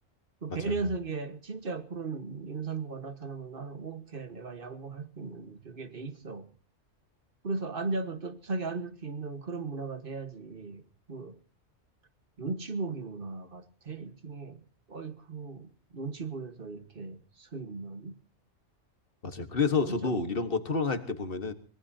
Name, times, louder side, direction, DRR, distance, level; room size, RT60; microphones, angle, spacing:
voice 1, 0.4-6.5 7.4-10.8 11.1-11.4 12.4-14.6 14.9-18.2 19.8-20.2, right 4 dB, 45° right, 1.6 m, -37 dB
voice 2, 19.2-21.5, left 4 dB, 45° left, 1.6 m, -29 dB
24.5 x 19.5 x 2.8 m
omnidirectional pair, 1.3 m